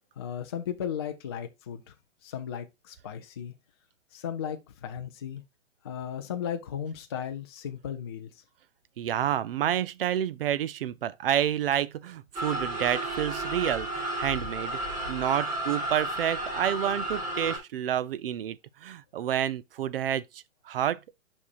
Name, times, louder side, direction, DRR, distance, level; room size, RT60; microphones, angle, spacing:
voice 1, 0.2-1.8 2.2-3.5 4.1-5.4 5.8-8.3, left 8 dB, 20° left, 0.4 m, -35 dB
voice 2, 9.0-14.8 15.1-21.2, right 10 dB, 50° right, 0.5 m, -29 dB
sound 1, 12.3-17.6, right 1 dB, 20° right, 3.1 m, -32 dB
8.3 x 5.4 x 2.4 m
hypercardioid pair, 140°, 39 cm